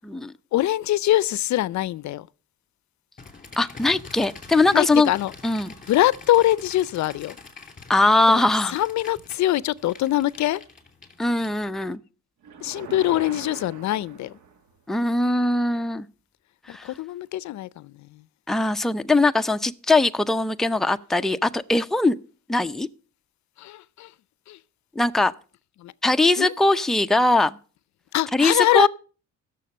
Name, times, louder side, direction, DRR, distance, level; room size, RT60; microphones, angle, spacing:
voice 1, 0.5-2.3 4.7-5.3 5.9-7.4 8.3-8.4 8.7-10.6 12.6-14.3 16.7-18.2 23.6-24.1 24.5-24.6 25.8-25.9 26.4-26.5 28.1-28.9, left 15 dB, 65° left, 0.5 m, -23 dB
sound 1, 3.2-11.9, left 4 dB, 25° left, 2.8 m, -45 dB
voice 2, 3.6-5.1 5.4-5.7 7.9-8.8 11.2-12.0 14.9-16.1 16.7-16.9 18.5-22.1 22.5-22.9 25.0-25.3 26.0-27.6 28.3-28.9, left 2 dB, ahead, 0.5 m, -21 dB
sound 2, 12.4-14.8, right 6 dB, 80° right, 1.6 m, -41 dB
16.5 x 6.9 x 5.3 m
cardioid pair, 90°, 30 cm